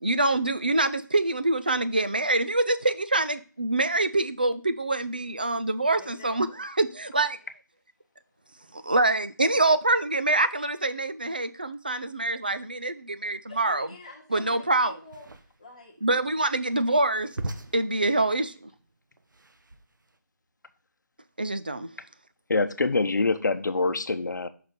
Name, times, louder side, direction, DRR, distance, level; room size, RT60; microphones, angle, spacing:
voice 1, 0.0-7.4 8.7-13.9 14.3-15.0 16.0-17.4 17.7-18.7 21.4-21.9, right 2 dB, 30° right, 0.4 m, -25 dB
voice 2, 6.0-6.6 13.5-15.9, left 3 dB, 20° left, 0.8 m, -47 dB
sound 1, 15.0-20.2, right 2 dB, 80° right, 1.0 m, -41 dB
voice 3, 22.5-24.5, left 3 dB, 70° left, 0.8 m, -25 dB
5.9 x 4.2 x 5.0 m
figure-of-eight pair, 180°, 10 cm